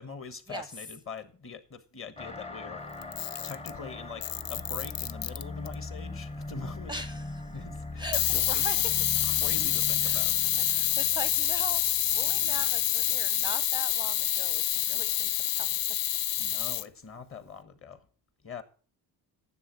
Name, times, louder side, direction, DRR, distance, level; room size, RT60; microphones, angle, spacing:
voice 1, 0.0-2.8 3.4-6.9 7.5-8.0 8.3-8.7 9.2-10.6 16.4-18.0 18.4-18.6, left 5 dB, 30° left, 1.3 m, -43 dB
sound 1, 2.2-13.1, left 2 dB, 15° left, 0.8 m, -41 dB
Camera, 3.0-3.8 4.2-5.7 8.1-16.9, left 12 dB, 55° left, 0.5 m, -27 dB
voice 2, 6.9-7.5 8.0-8.9 10.0-16.2, right 2 dB, 10° right, 0.5 m, -41 dB
9.9 x 7.7 x 6.3 m
cardioid pair, 125°, 41 cm